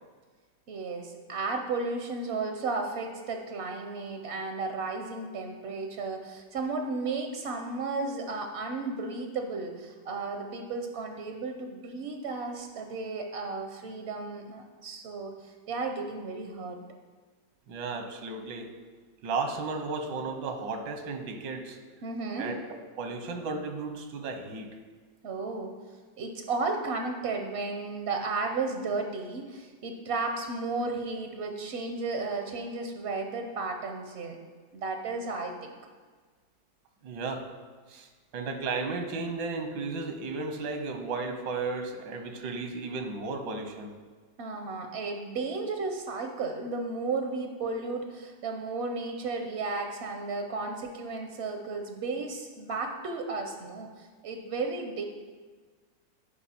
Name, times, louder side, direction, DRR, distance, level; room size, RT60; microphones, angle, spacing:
voice 1, 0.7-16.8 22.0-22.5 25.2-25.7 26.2-34.4 34.7-35.8 44.4-55.0, right 3 dB, 65° right, 4 dB, 0.6 m, -34 dB
voice 2, 17.7-18.7 19.2-21.8 22.4-22.6 23.0-24.7 37.0-37.5 37.9-43.9, right 3 dB, 85° right, 5 dB, 1.6 m, -34 dB
11.0 x 4.9 x 4.3 m, 1.5 s
omnidirectional pair, 1.9 m